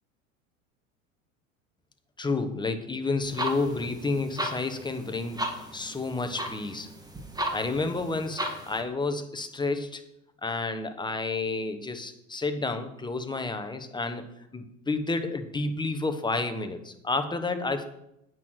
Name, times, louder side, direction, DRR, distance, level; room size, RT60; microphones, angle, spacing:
voice 1, 2.2-5.4 5.7-6.9 7.5-10.0 10.4-17.8, left 3 dB, 10° left, 7 dB, 1.2 m, -30 dB
sound 1, 3.2-8.8, right 1 dB, 10° right, 1.8 m, -36 dB
9.0 x 6.2 x 6.4 m, 0.81 s
hypercardioid pair, 85°, 40 cm